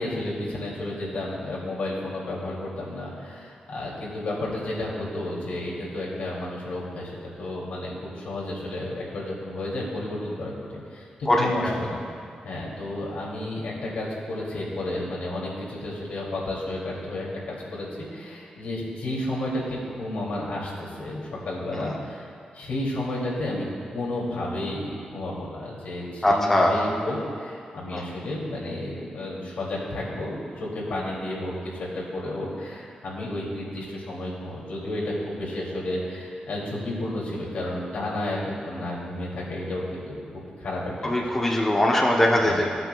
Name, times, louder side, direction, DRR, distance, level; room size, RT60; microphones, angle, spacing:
voice 1, 0.0-12.0 12.4-22.2 22.5-41.4 42.3-42.5, left 1 dB, 80° left, -5 dB, 2.4 m, -32 dB
voice 2, 11.3-11.8 21.7-22.0 26.2-26.8 27.9-28.0 41.0-42.7, left 1 dB, 10° left, -1 dB, 0.6 m, -21 dB
15.5 x 7.9 x 2.2 m, 2.3 s
wide cardioid pair, 145°, 3 cm